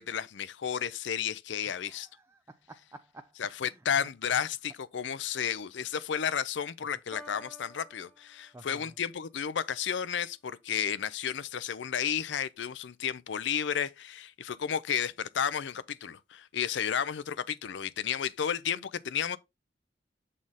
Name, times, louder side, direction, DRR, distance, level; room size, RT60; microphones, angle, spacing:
voice 1, 0.0-2.1 3.4-19.4, left 8 dB, 70° left, 0.5 m, -32 dB
voice 2, 1.7-3.3 3.6-3.8 8.5-8.9, right 2 dB, 15° right, 0.4 m, -52 dB
Piano, 7.1-9.1, equal, 5° left, 0.9 m, -52 dB
7.5 x 4.2 x 3.4 m
head